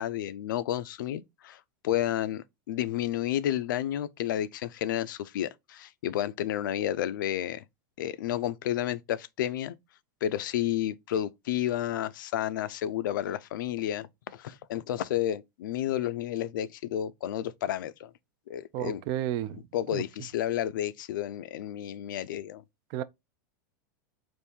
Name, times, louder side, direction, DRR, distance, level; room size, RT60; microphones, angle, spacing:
voice 1, 0.0-7.6 8.0-9.8 10.2-18.1 18.5-19.0 19.7-22.6, left 11 dB, 80° left, 0.4 m, -31 dB
voice 2, 18.7-19.6 19.9-20.0 22.9-23.0, right 12 dB, 45° right, 0.4 m, -31 dB
3.6 x 2.6 x 4.2 m
supercardioid pair, 140°, 10 cm